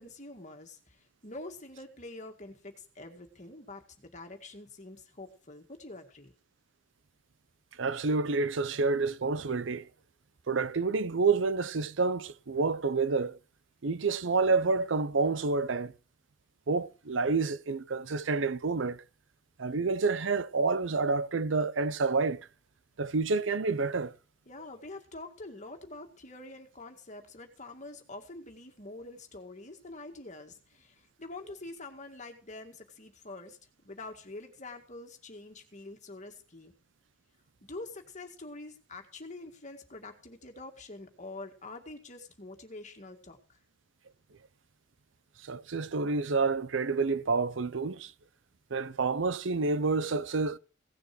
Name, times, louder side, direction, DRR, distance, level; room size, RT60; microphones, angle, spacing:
voice 1, 0.0-6.3 24.5-33.6 33.8-36.7 37.6-43.6, left 2 dB, 40° left, 2.1 m, -46 dB
voice 2, 7.8-9.9 10.5-13.4 13.8-15.9 16.7-19.0 19.6-22.4 23.0-24.1 45.4-48.1 48.7-50.6, right 4 dB, 90° right, 0.7 m, -28 dB
17.0 x 6.8 x 6.1 m
head